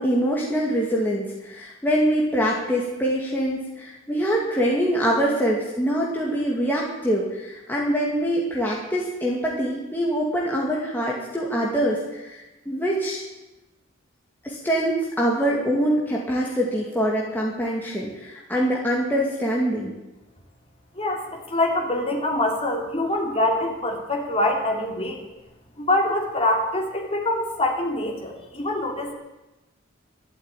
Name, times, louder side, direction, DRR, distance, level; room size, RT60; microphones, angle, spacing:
voice 1, 0.0-13.2 14.4-19.9, equal, 10° left, -4 dB, 2.2 m, -24 dB
voice 2, 21.5-25.2 25.8-29.1, left 1 dB, 30° left, 1 dB, 3.0 m, -24 dB
13.0 x 12.0 x 9.1 m, 1.0 s
head